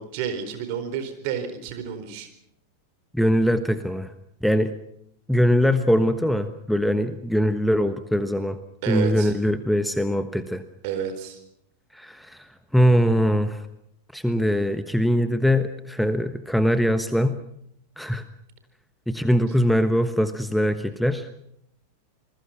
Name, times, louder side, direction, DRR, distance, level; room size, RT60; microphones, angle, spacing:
voice 1, 0.0-2.3 8.8-9.3 10.8-11.4, right 8 dB, 45° right, 8 dB, 4.4 m, -30 dB
voice 2, 3.1-4.1 4.4-4.7 5.3-8.6 8.9-10.6 11.9-13.7 14.1-17.4 18.0-18.2 19.1-21.3, equal, ahead, 11 dB, 1.2 m, -22 dB
28.0 x 21.0 x 6.0 m, 0.73 s
figure-of-eight pair, 90°, 0 cm